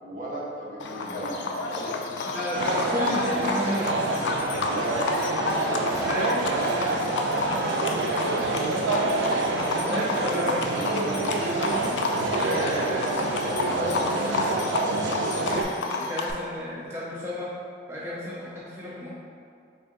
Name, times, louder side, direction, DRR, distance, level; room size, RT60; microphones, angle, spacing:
voice 1, 0.0-2.0 4.7-5.1 8.5-8.8, right 2 dB, 45° right, -5 dB, 0.7 m, -36 dB
Livestock farm animals working animals, 0.8-16.3, left 3 dB, 75° left, 0.3 m, -30 dB
voice 2, 2.2-4.2 5.9-7.8 9.9-11.9 12.3-15.7 16.0-17.5 17.9-19.1, left 1 dB, 15° right, -8 dB, 0.4 m, -33 dB
sound 1, 2.5-15.6, right 3 dB, 90° right, 0.3 m, -27 dB
3.5 x 2.5 x 3.8 m, 2.3 s
head